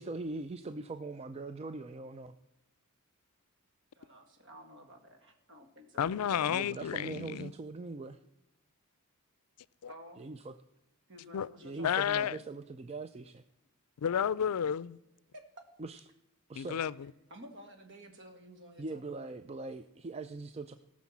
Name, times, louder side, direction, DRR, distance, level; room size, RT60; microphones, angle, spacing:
voice 1, 0.0-2.4 6.5-8.2 10.2-10.5 11.6-13.4 15.8-16.0 16.5-16.8 18.8-20.8, right 3 dB, 25° right, 0.4 m, -41 dB
voice 2, 4.0-6.1 9.9-10.2 11.1-12.0 15.3-15.6 17.3-19.3, equal, 55° right, 2.0 m, -52 dB
voice 3, 6.0-7.5 9.8-9.9 11.3-11.5 11.8-12.4 14.0-15.0 16.6-17.1, left 8 dB, 85° left, 0.4 m, -31 dB
17.5 x 6.2 x 7.3 m
head